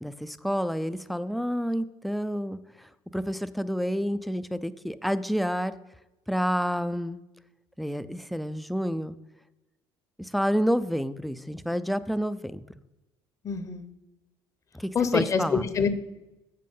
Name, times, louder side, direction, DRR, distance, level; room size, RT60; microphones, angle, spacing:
voice 1, 0.0-5.8 6.3-7.2 7.8-9.2 10.2-12.6 14.7-15.7, equal, ahead, 13 dB, 0.4 m, -29 dB
voice 2, 13.4-13.8 14.9-15.9, left 6 dB, 30° left, 11 dB, 0.8 m, -25 dB
7.6 x 7.4 x 5.5 m, 1.0 s
cardioid pair, 130°, 10 cm